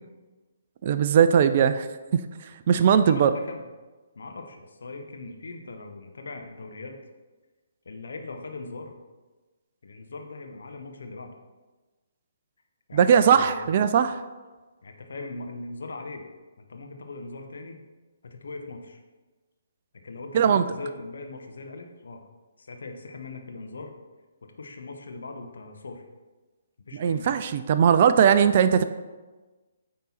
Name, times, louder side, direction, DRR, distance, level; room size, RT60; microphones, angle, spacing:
voice 1, 0.8-1.9 2.1-2.2 2.7-3.3 12.9-14.2 20.3-20.6 26.9-28.8, right 8 dB, 40° right, 11 dB, 0.3 m, -19 dB
voice 2, 3.0-3.6 4.1-7.0 7.8-9.0 9.8-11.3 12.9-13.7 14.8-16.2 16.6-17.8 18.2-19.0 20.0-22.2 22.6-23.9 24.6-26.0 26.9-27.4, left 3 dB, 60° left, 4 dB, 0.9 m, -40 dB
9.0 x 3.8 x 4.3 m, 1.2 s
figure-of-eight pair, 130°, 0 cm